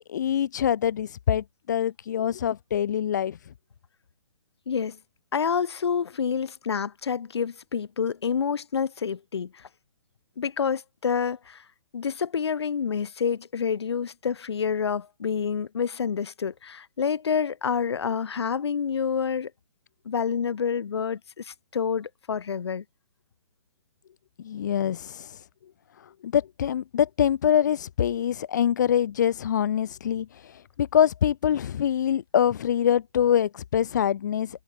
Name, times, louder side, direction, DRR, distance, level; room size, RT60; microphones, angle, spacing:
voice 1, 0.1-3.4 24.4-25.5 26.2-34.6, left 9 dB, 35° left, 5.0 m, -24 dB
voice 2, 4.7-5.0 5.3-9.7 10.4-11.6 11.9-19.5 20.0-22.8, left 6 dB, 55° left, 6.0 m, -28 dB
hypercardioid pair, 180°, 16 cm